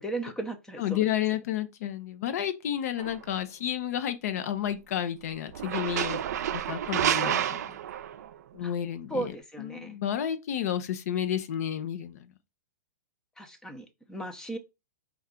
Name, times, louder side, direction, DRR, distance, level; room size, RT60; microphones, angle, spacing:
voice 1, 0.0-1.1 8.6-8.7 9.1-10.0 13.4-14.6, right 2 dB, 5° left, 0.6 m, -36 dB
voice 2, 0.8-6.2 6.5-7.6 8.5-9.3 9.6-12.2, left 10 dB, 60° left, 0.7 m, -31 dB
sound 1, 3.0-3.2 5.5-8.4, right 10 dB, 65° right, 0.4 m, -29 dB
4.3 x 2.3 x 3.7 m
hypercardioid pair, 135°, 10 cm